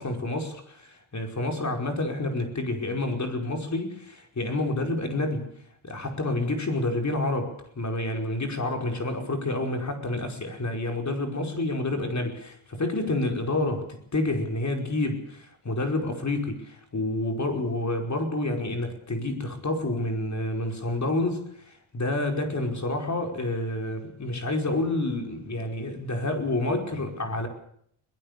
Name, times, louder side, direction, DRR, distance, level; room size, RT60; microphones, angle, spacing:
voice 1, 0.0-5.5 5.8-13.9 14.1-27.5, left 2 dB, 35° left, 5.3 m, -29 dB
22.5 x 20.5 x 6.8 m
wide cardioid pair, 135°, 49 cm